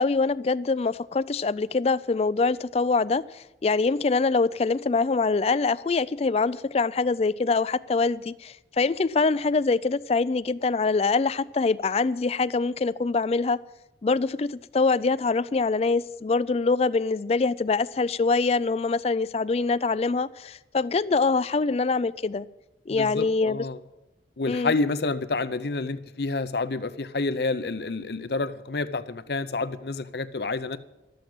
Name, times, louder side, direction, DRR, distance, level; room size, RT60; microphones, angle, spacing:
voice 1, 0.0-13.6 14.0-22.5 22.9-23.7 24.5-24.7, left 4 dB, 35° left, 0.4 m, -24 dB
voice 2, 22.9-23.8 24.4-30.8, left 3 dB, 60° left, 0.7 m, -29 dB
13.0 x 7.9 x 8.9 m
head